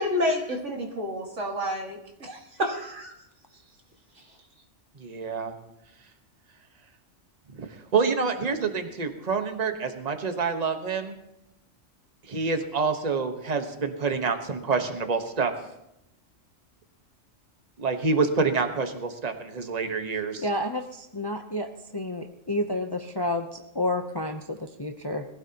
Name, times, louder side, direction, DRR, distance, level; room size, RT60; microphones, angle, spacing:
voice 1, 0.0-3.1, left 1 dB, 65° right, 1 dB, 2.3 m, -29 dB
voice 2, 5.0-5.5 7.6-7.7 7.9-11.1 12.3-15.5 17.8-20.5, right 4 dB, 35° right, 6 dB, 1.3 m, -27 dB
voice 3, 20.4-21.7 21.9-25.2, left 1 dB, 25° left, 5 dB, 0.6 m, -30 dB
22.0 x 15.5 x 2.9 m, 0.83 s
omnidirectional pair, 1.3 m